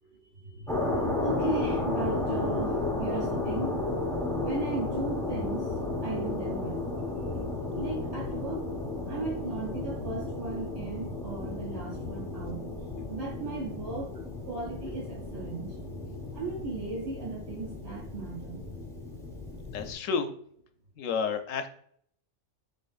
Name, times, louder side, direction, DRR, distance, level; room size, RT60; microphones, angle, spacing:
voice 1, 0.0-3.8 4.4-5.7 6.0-6.8 7.3-7.4 7.7-8.6 9.1-14.1 14.4-15.8 16.3-18.6, right 4 dB, 60° right, -5 dB, 1.9 m, -37 dB
sound 1, 0.7-19.9, left 2 dB, 5° left, 0.9 m, -33 dB
voice 2, 19.7-20.3 21.0-21.7, left 6 dB, 90° left, 7 dB, 1.0 m, -30 dB
5.1 x 4.1 x 2.4 m, 0.64 s
omnidirectional pair, 1.3 m